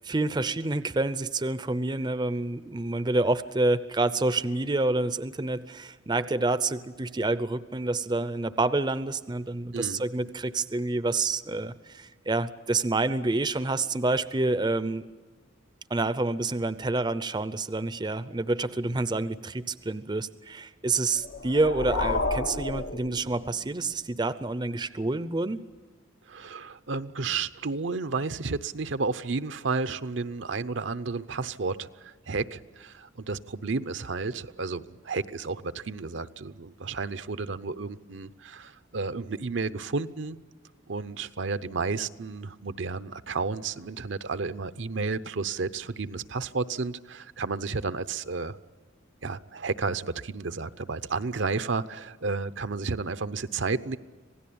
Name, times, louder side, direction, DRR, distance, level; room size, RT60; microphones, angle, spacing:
voice 1, 0.0-15.0 15.9-25.6, right 2 dB, 20° right, 14 dB, 0.6 m, -28 dB
sound 1, 21.1-23.8, left 2 dB, 85° left, 1.8 m, -31 dB
voice 2, 26.3-40.4 40.9-48.6 49.2-54.0, right 4 dB, 65° right, 12 dB, 0.7 m, -32 dB
26.5 x 17.5 x 8.6 m, 1.4 s
head